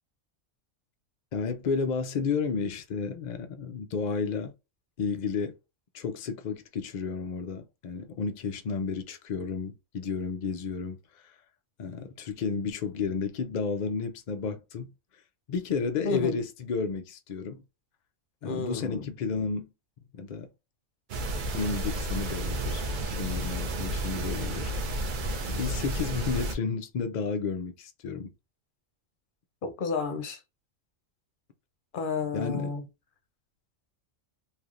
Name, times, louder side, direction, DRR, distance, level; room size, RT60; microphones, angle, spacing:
voice 1, 1.3-4.5 5.0-5.5 5.9-11.3 11.8-14.9 15.5-17.6 18.4-19.7 20.1-20.5 21.5-24.7 25.5-28.3 32.3-32.7, left 5 dB, 85° left, 0.4 m, -32 dB
voice 2, 16.0-16.4 18.4-19.1 29.6-30.4 31.9-32.8, left 4 dB, 50° left, 0.7 m, -31 dB
sound 1, 21.1-26.6, right 1 dB, 55° right, 0.6 m, -31 dB
3.2 x 2.6 x 2.4 m
omnidirectional pair, 1.3 m